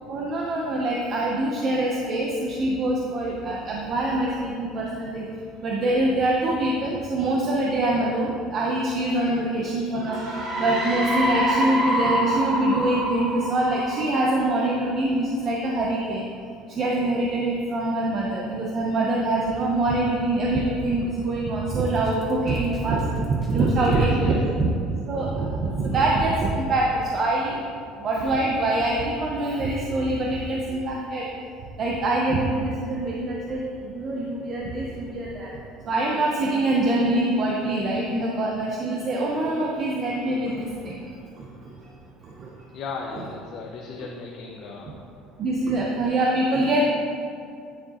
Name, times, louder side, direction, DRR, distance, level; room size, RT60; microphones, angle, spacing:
voice 1, 0.1-5.3 5.6-10.2 10.6-16.2 16.7-24.7 25.1-27.6 28.0-31.2 31.8-35.5 35.9-41.0 45.4-46.8, right 2 dB, 30° right, -3 dB, 0.6 m, -24 dB
sound 1, 10.1-14.7, equal, 60° right, 1.6 m, -26 dB
Drum kit, 21.7-24.1, right 2 dB, ahead, 1.0 m, -42 dB
voice 2, 23.8-24.4 42.7-45.0, left 4 dB, 45° left, 0 dB, 0.5 m, -35 dB
9.8 x 4.5 x 2.9 m, 2.5 s
cardioid pair, 170°, 0 cm